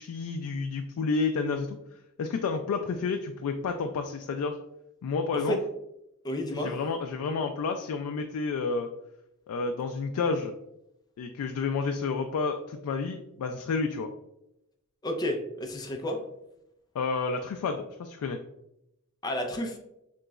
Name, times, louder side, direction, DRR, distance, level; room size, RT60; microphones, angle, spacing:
voice 1, 0.0-1.8 2.2-4.6 5.0-5.6 6.5-8.9 9.5-10.5 11.2-14.1 16.9-18.4, left 4 dB, 90° left, 6 dB, 0.3 m, -30 dB
voice 2, 6.2-6.8 15.0-16.2 19.2-19.8, left 1 dB, 20° left, 2 dB, 0.4 m, -31 dB
3.8 x 3.0 x 2.3 m, 0.84 s
head